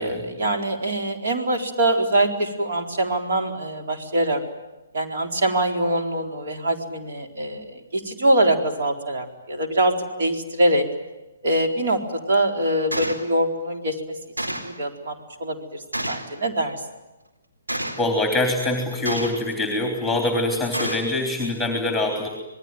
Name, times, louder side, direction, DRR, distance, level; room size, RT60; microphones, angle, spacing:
voice 1, 0.0-4.4 4.9-10.8 11.4-14.0 14.5-15.1 15.4-16.8, right 1 dB, 55° right, 3 dB, 4.3 m, -23 dB
Gunshot gunfire, 12.9-13.2 14.4-14.8 15.9-16.3 17.7-18.1 19.0-19.5 20.7-21.1, right 1 dB, 85° right, 4.2 m, -29 dB
voice 2, 18.0-22.3, left 2 dB, ahead, 4 dB, 3.5 m, -24 dB
27.0 x 20.5 x 9.2 m, 1.1 s
figure-of-eight pair, 130°, 0 cm